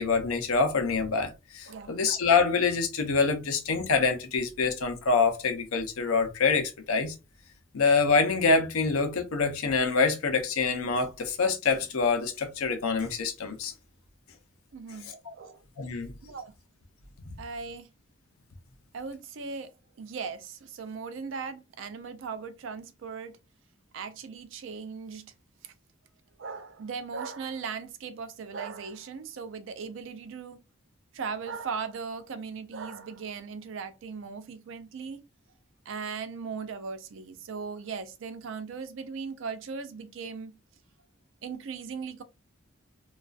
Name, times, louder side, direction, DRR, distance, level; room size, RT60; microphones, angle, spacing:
voice 1, 0.0-7.2 7.7-13.7 15.0-15.3 15.8-16.1 17.2-17.4, left 4 dB, 90° left, 0.6 m, -26 dB
voice 2, 1.7-2.0 14.7-15.1 15.3-15.6 16.2-16.5 17.4-17.9 18.9-19.7 20.0-23.4 23.9-25.3 25.6-25.7 26.4-30.6 31.1-35.2 35.9-40.5 41.4-42.2, right 5 dB, 65° right, 0.4 m, -38 dB
2.3 x 2.3 x 2.3 m
head